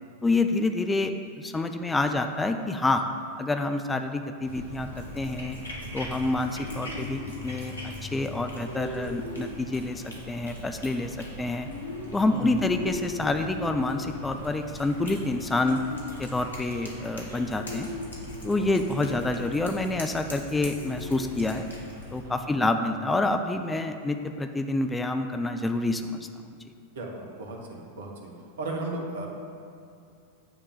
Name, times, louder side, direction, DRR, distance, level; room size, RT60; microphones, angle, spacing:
voice 1, 0.2-1.1 1.4-3.0 3.4-5.6 5.9-11.7 12.1-15.8 16.2-17.9 18.4-21.7 22.1-26.3, left 2 dB, 10° left, 6 dB, 0.4 m, -27 dB
Cat, 4.4-22.2, left 1 dB, 75° left, 1.5 m, -41 dB
sound 1, 6.4-7.4 8.7-9.6 11.5-14.1 15.2-16.3 17.2-19.6 19.9-20.0 20.8-21.3, left 1 dB, 85° right, 2.0 m, -39 dB
voice 2, 12.3-12.7 18.6-18.7 22.2-22.5 26.9-29.3, right 2 dB, 60° right, 1 dB, 1.2 m, -36 dB
9.2 x 3.6 x 6.7 m, 2.5 s
figure-of-eight pair, 90°, 0 cm